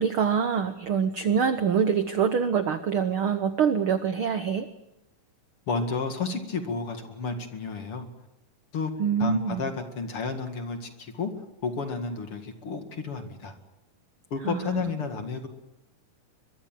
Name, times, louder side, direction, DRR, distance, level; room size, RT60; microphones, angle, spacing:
voice 1, 0.0-4.7 9.0-9.7 14.4-14.9, right 7 dB, 75° right, 10 dB, 1.2 m, -25 dB
voice 2, 5.7-8.1 8.7-8.9 9.2-11.3 11.6-13.5 14.3-15.5, left 4 dB, 45° left, 6 dB, 2.6 m, -31 dB
23.0 x 23.0 x 7.6 m, 0.90 s
omnidirectional pair, 3.9 m